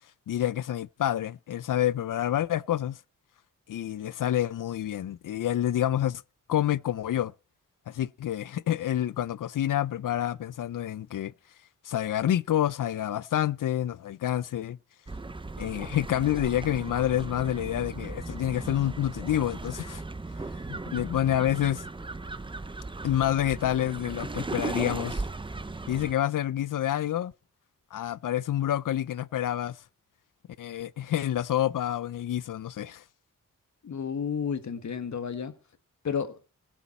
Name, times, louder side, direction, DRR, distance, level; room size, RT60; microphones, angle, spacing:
voice 1, 0.3-3.0 3.7-6.2 6.5-7.3 7.9-11.3 11.8-14.8 15.6-20.0 20.7-21.8 23.0-25.2 25.9-27.3 27.9-29.8 30.6-33.0, left 11 dB, 75° left, 0.5 m, -28 dB
sound 1, 15.1-26.1, right 3 dB, 15° right, 0.7 m, -37 dB
voice 2, 33.8-35.5 36.0-36.4, left 6 dB, 60° left, 1.6 m, -31 dB
21.0 x 7.3 x 4.3 m
wide cardioid pair, 170°, 32 cm